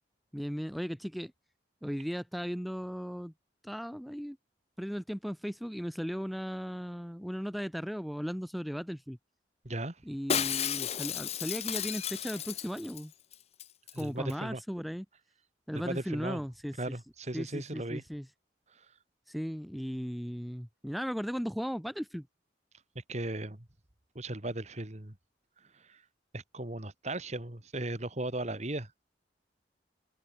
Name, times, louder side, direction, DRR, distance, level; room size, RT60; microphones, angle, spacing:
voice 1, 0.3-1.3 1.8-3.3 3.6-4.4 4.8-9.2 10.0-13.1 14.0-15.0 15.7-17.0 17.3-18.3 19.3-22.3, equal, ahead, 1.1 m, -36 dB
voice 2, 9.6-10.0 13.9-14.6 15.7-16.4 16.8-18.0 23.1-23.6 24.1-25.1 25.9-26.0 26.3-28.9, right 1 dB, 40° right, 2.3 m, -36 dB
Shatter, 10.3-13.0 13.3-13.4 13.6-14.0 14.3-14.4, left 9 dB, 35° left, 0.7 m, -33 dB
head